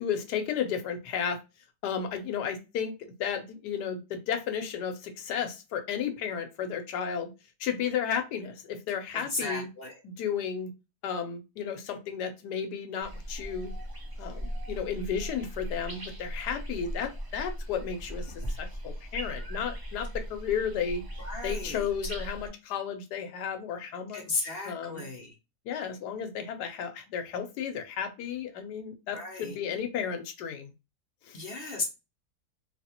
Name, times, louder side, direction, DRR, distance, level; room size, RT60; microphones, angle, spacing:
voice 1, 0.0-1.4 1.8-2.9 3.2-7.3 7.6-9.7 10.0-10.7 11.0-13.7 14.2-21.0 21.4-25.0 25.7-30.7 31.2-31.4, left 7 dB, 90° left, 7 dB, 1.2 m, -33 dB
voice 2, 9.1-10.0 21.2-21.9 24.1-25.3 29.1-29.6 31.3-31.8, left 3 dB, 55° left, 2 dB, 0.7 m, -35 dB
sound 1, 13.0-22.5, equal, 35° right, 0.3 m, -38 dB
3.3 x 2.7 x 2.8 m, 0.27 s
omnidirectional pair, 1.7 m